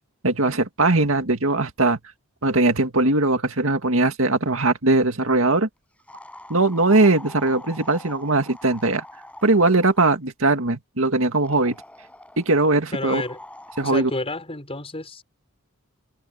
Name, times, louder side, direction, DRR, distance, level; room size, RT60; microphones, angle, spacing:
voice 1, 0.2-2.0 2.4-5.7 6.5-9.0 9.4-11.8 12.4-13.2 13.8-14.1, right 2 dB, 70° right, 2.3 m, -20 dB
sound 1, 6.1-10.1 11.4-12.6 13.1-14.1, left 1 dB, 5° left, 6.9 m, -43 dB
voice 2, 12.9-13.4 13.8-15.2, left 2 dB, 30° left, 4.7 m, -30 dB
head